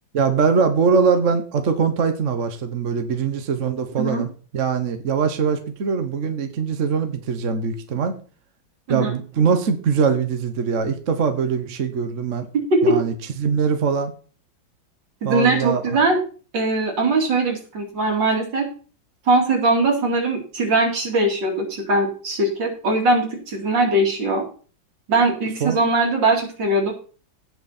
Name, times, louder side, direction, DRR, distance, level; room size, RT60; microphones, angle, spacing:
voice 1, 0.1-4.3 4.5-8.1 8.9-12.5 12.8-14.1 15.2-15.8 25.6-25.8, right 5 dB, 45° right, 7 dB, 1.2 m, -22 dB
voice 2, 15.2-16.2 16.5-18.7 19.3-24.4 25.1-26.9, right 2 dB, 65° right, 2 dB, 3.4 m, -20 dB
17.0 x 6.1 x 4.3 m, 0.39 s
omnidirectional pair, 2.1 m